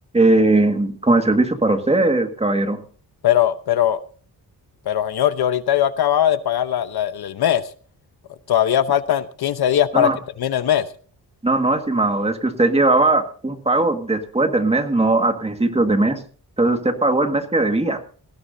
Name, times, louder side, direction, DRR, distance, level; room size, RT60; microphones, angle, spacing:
voice 1, 0.1-2.8 9.9-10.2 11.4-16.2 16.6-18.0, right 2 dB, 15° right, 1.9 m, -19 dB
voice 2, 3.2-4.0 4.9-7.6 8.5-10.1 10.4-10.9, left 11 dB, 75° left, 1.0 m, -19 dB
19.0 x 16.0 x 2.7 m
wide cardioid pair, 125°, 38 cm